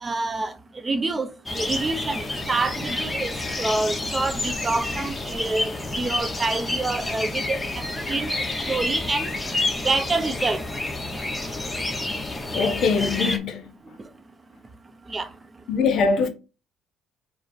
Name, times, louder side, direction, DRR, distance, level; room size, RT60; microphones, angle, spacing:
voice 1, 0.0-0.5 0.8-1.3 1.6-7.6 8.1-8.4 8.7-9.3 9.8-10.6 15.1-15.3, right 3 dB, 25° right, 0.5 m, -27 dB
sound 1, 1.5-13.4, left 2 dB, 15° left, 0.8 m, -29 dB
voice 2, 12.5-13.7 15.7-16.3, left 4 dB, 65° left, 0.8 m, -22 dB
4.8 x 2.0 x 4.2 m
cardioid pair, 90°, 0 cm